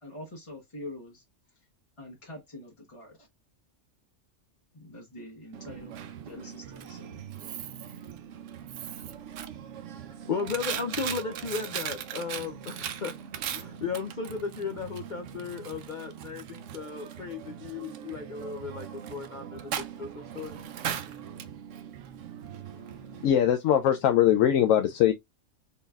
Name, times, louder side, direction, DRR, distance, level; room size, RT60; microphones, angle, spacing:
voice 1, 0.0-1.2 2.0-3.3 4.7-7.3, left 1 dB, 25° left, 1.0 m, -45 dB
Coin (dropping), 5.5-23.3, right 9 dB, 75° right, 0.9 m, -39 dB
voice 2, 10.1-13.1 13.5-20.6, left 5 dB, 60° left, 0.5 m, -35 dB
voice 3, 23.2-25.1, left 10 dB, 85° left, 1.0 m, -21 dB
4.0 x 3.8 x 2.3 m
omnidirectional pair, 1.3 m